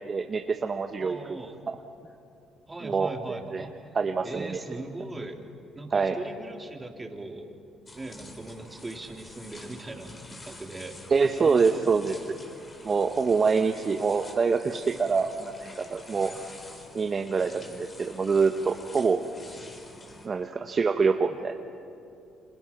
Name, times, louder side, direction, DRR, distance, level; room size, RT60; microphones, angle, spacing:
voice 1, 0.1-1.4 2.8-3.7 3.9-4.6 5.9-6.1 11.1-12.4 12.8-16.3 16.9-19.2 20.2-21.5, right 5 dB, 40° right, 5 dB, 1.2 m, -25 dB
voice 2, 1.0-1.6 2.7-3.8 4.2-5.4 5.7-7.5 7.9-11.0 11.4-12.3 16.1-16.4, right 2 dB, 20° right, 3 dB, 3.4 m, -39 dB
sound 1, 7.9-20.3, left 2 dB, 30° left, 4.4 m, -47 dB
30.0 x 27.0 x 6.0 m, 2.6 s
supercardioid pair, 75°, 0 cm